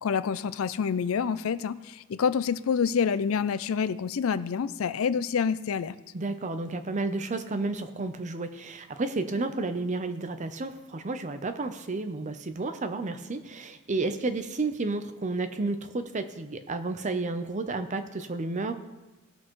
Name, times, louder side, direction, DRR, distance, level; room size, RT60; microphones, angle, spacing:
voice 1, 0.0-6.0, left 6 dB, 80° left, 15 dB, 0.4 m, -27 dB
voice 2, 6.1-18.7, right 3 dB, 35° right, 9 dB, 0.6 m, -31 dB
19.0 x 6.4 x 3.1 m, 1.1 s
head